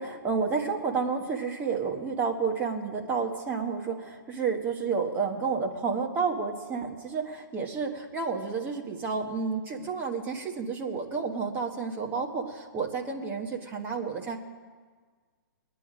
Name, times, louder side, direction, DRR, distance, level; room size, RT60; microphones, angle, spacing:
voice 1, 0.0-14.4, right 5 dB, 15° right, 1 dB, 1.3 m, -30 dB
22.0 x 9.3 x 5.1 m, 1.5 s
hypercardioid pair, 155°, 12 cm